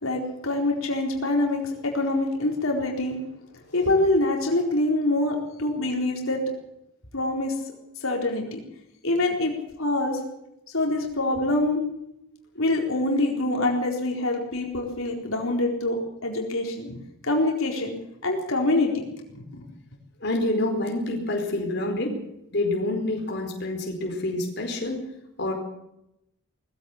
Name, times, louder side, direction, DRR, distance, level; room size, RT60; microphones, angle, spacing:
voice 1, 0.0-3.1 3.7-6.4 7.1-7.5 8.0-8.6 9.0-9.5 9.8-10.2 10.7-11.9 12.6-17.0 17.2-17.9 18.2-19.0 19.3-19.6, left 2 dB, 85° left, 0 dB, 4.3 m, -25 dB
voice 2, 20.2-22.2 22.5-25.0 25.4-25.5, left 1 dB, 55° left, 1 dB, 4.7 m, -27 dB
20.5 x 15.0 x 8.4 m, 0.83 s
head